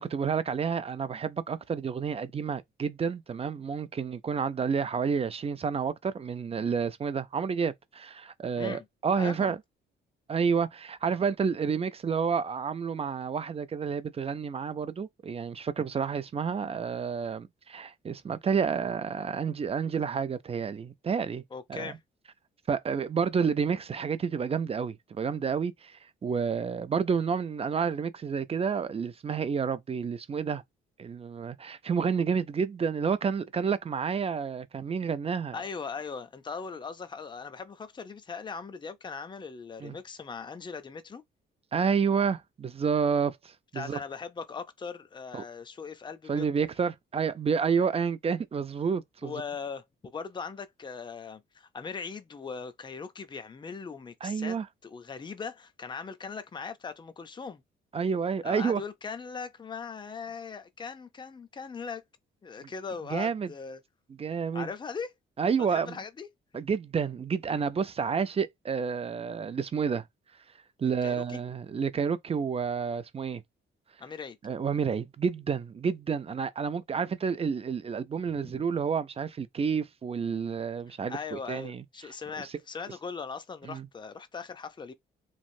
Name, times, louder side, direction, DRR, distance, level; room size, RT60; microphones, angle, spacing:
voice 1, 0.0-9.6 10.3-21.4 21.7-21.9 22.7-30.6 31.0-35.6 39.8-39.9 41.7-44.0 45.3-45.4 46.3-49.3 54.2-54.7 57.9-58.8 62.6-62.7 63.1-63.5 64.2-64.7 65.4-66.0 66.5-70.0 70.8-73.4 74.4-81.8 83.6-83.9, right 6 dB, 30° right, 0.5 m, -30 dB
voice 2, 9.2-9.5 21.5-22.0 35.5-41.2 43.7-46.5 49.2-54.6 54.8-57.6 58.4-62.0 62.4-63.8 64.5-65.1 65.6-66.3 71.0-71.4 74.0-74.4 78.4-78.6 80.9-84.9, left 5 dB, 25° left, 0.5 m, -39 dB
3.2 x 2.5 x 2.6 m
cardioid pair, 90°, 20 cm